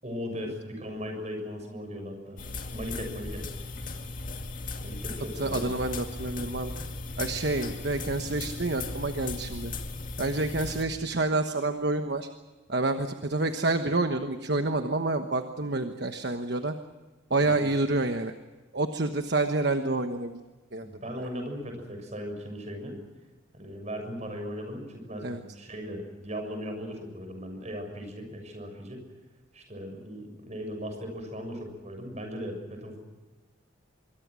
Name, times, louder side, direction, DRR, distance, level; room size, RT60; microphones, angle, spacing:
voice 1, 0.0-2.4 2.7-3.4 4.8-5.7 17.4-17.6 20.8-23.0 23.6-29.0 29.5-33.0, equal, 35° right, 4 dB, 6.6 m, -38 dB
sound 1, 2.4-10.8, left 3 dB, 40° left, 2.2 m, -37 dB
voice 2, 5.4-6.7 7.2-9.7 10.2-12.3 12.7-16.7 17.3-18.3 18.7-20.4 20.7-20.9 25.2-25.4, right 2 dB, 55° right, 6 dB, 1.2 m, -28 dB
25.5 x 23.5 x 6.3 m, 1.2 s
head